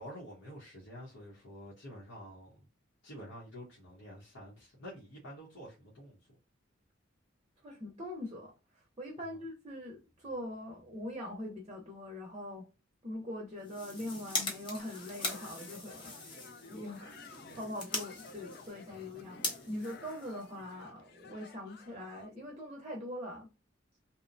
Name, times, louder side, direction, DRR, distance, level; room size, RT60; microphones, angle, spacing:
voice 1, 0.0-2.6 3.0-6.2, equal, 75° left, 0.9 m, -48 dB
voice 2, 7.6-12.7 13.0-16.4 16.7-19.4 19.7-23.5, left 1 dB, 25° right, 0.6 m, -42 dB
sound 1, 13.6-20.9, left 2 dB, 25° left, 0.7 m, -41 dB
sound 2, 14.8-22.3, left 4 dB, 55° left, 0.3 m, -54 dB
2.8 x 2.1 x 2.5 m
head